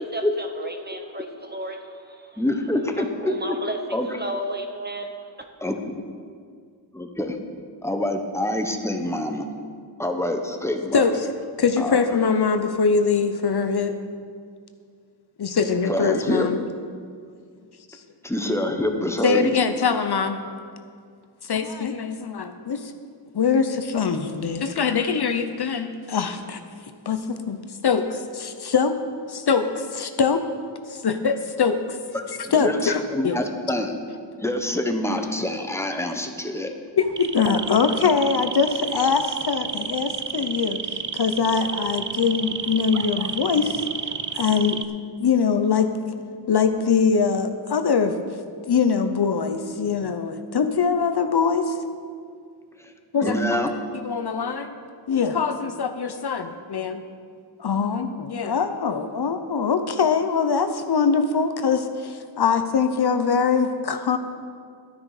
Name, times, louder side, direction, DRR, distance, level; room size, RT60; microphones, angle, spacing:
voice 1, 0.0-2.4 3.0-5.0, right 1 dB, 20° right, 4 dB, 0.9 m, -33 dB
voice 2, 2.4-3.6 3.9-4.1 5.6-5.7 6.9-7.4 7.8-9.4 10.0-11.1 11.8-12.0 15.9-16.5 18.2-19.6 32.1-34.0 34.4-36.7 53.2-53.7, left 1 dB, 5° left, 4 dB, 0.9 m, -26 dB
voice 3, 11.6-13.9 15.4-16.6 19.2-20.4 21.4-22.9 23.3-26.6 27.1-27.6 27.8-29.0 29.3-30.4 30.9-32.0 32.5-33.4 37.0-43.8 44.3-44.8 45.2-45.9 46.5-48.1 48.7-51.8 53.1-53.4 53.9-54.7 55.1-57.0 57.6-64.2, left 6 dB, 60° left, 8 dB, 0.7 m, -23 dB
sound 1, 37.0-44.8, right 7 dB, 45° right, 0.5 m, -31 dB
12.5 x 9.8 x 4.9 m, 2.1 s
wide cardioid pair, 115°, 45 cm